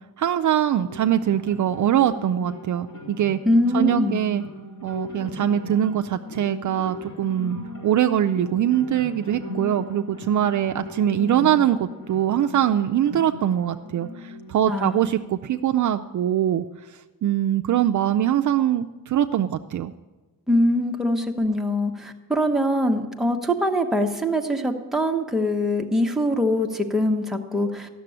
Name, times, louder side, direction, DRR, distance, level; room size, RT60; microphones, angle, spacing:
voice 1, 0.2-3.4 3.7-4.4 4.8-7.6 7.8-16.6 17.2-19.9, right 10 dB, 55° right, 6 dB, 0.4 m, -22 dB
sound 1, 0.8-15.8, left 1 dB, 50° left, 5.3 m, -38 dB
voice 2, 3.4-4.2 14.7-15.0 20.5-27.9, left 1 dB, ahead, 1 dB, 1.0 m, -23 dB
13.5 x 6.8 x 9.8 m, 1.2 s
cardioid pair, 130°, 38 cm